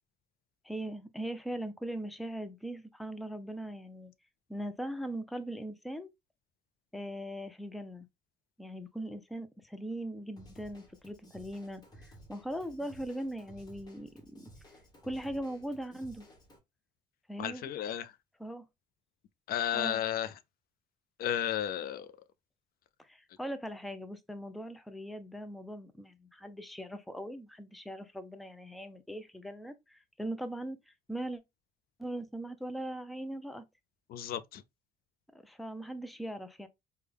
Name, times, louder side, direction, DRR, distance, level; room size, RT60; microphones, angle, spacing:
voice 1, 0.6-4.1 4.5-6.1 6.9-8.1 8.6-14.4 15.0-16.3 17.3-17.6 18.4-18.7 19.7-20.0 23.0-31.4 32.0-33.6 35.4-36.7, right 1 dB, ahead, 0.4 m, -40 dB
Drum kit / Drum, 10.4-16.6, equal, 25° left, 1.2 m, -55 dB
voice 2, 17.4-18.1 19.5-20.3 21.2-22.1 34.1-34.6, left 10 dB, 60° left, 0.4 m, -33 dB
3.5 x 2.2 x 3.3 m
cardioid pair, 110°, 17 cm